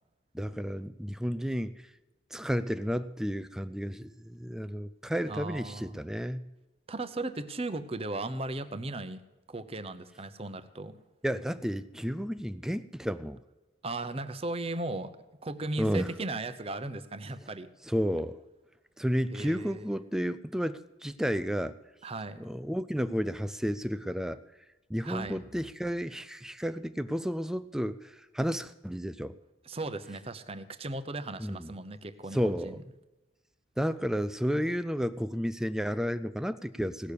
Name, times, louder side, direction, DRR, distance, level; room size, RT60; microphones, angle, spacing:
voice 1, 0.3-1.9 2.3-6.5 11.2-13.4 15.8-16.1 17.8-18.4 19.0-21.8 22.4-24.4 24.9-29.4 31.4-31.7 32.3-32.8 33.8-37.1, equal, 5° right, 14 dB, 0.3 m, -32 dB
voice 2, 5.3-5.9 6.9-9.2 9.5-11.0 13.8-15.1 15.4-17.7 19.3-19.9 22.0-22.5 25.0-25.5 29.7-32.8, right 2 dB, 30° right, 10 dB, 0.8 m, -37 dB
17.5 x 6.7 x 8.4 m, 1.1 s
head